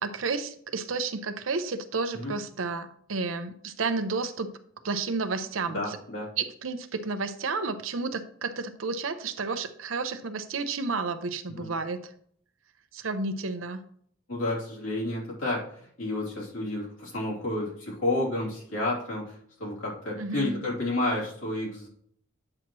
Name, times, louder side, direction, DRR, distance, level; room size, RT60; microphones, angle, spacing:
voice 1, 0.0-4.6 4.8-6.0 6.4-12.1 12.9-13.8 20.2-20.6, right 4 dB, 90° right, 10 dB, 0.7 m, -31 dB
voice 2, 5.7-6.3 11.5-11.7 14.3-21.9, left 2 dB, 85° left, -4 dB, 3.0 m, -31 dB
8.7 x 6.0 x 3.1 m, 0.62 s
head